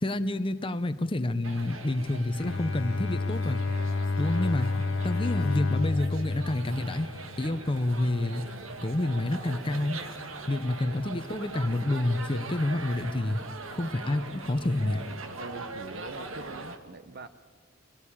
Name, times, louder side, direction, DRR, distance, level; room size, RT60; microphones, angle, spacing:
voice 1, 0.0-3.6 4.2-4.7 5.0-7.1 7.4-8.4 8.8-10.0 10.5-13.4 13.7-15.0, left 1 dB, 25° left, 9 dB, 0.8 m, -28 dB
sound 1, 1.4-16.8, right 3 dB, 80° right, 1.8 m, -42 dB
sound 2, 1.7-13.0, right 3 dB, 30° right, 3.3 m, -54 dB
Bowed string instrument, 2.4-7.6, left 3 dB, 65° left, 0.6 m, -30 dB
voice 2, 15.4-17.3, right 3 dB, 50° right, 10 dB, 0.8 m, -43 dB
25.0 x 17.5 x 8.7 m, 1.5 s
head